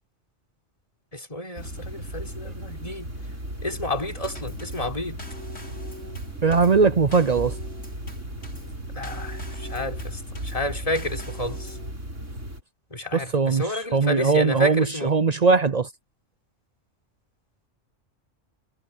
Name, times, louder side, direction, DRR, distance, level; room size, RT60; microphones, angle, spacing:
voice 1, 1.1-3.1 3.6-5.2 8.9-11.8 12.9-15.1, left 1 dB, 30° left, 4.4 m, -31 dB
sound 1, 1.6-12.6, right 1 dB, 85° right, 8.3 m, -36 dB
Drum kit / Snare drum / Bass drum, 4.2-11.9, equal, 80° left, 7.3 m, -42 dB
voice 2, 6.4-7.6 13.1-15.9, right 4 dB, 45° right, 0.6 m, -20 dB
omnidirectional pair, 1.2 m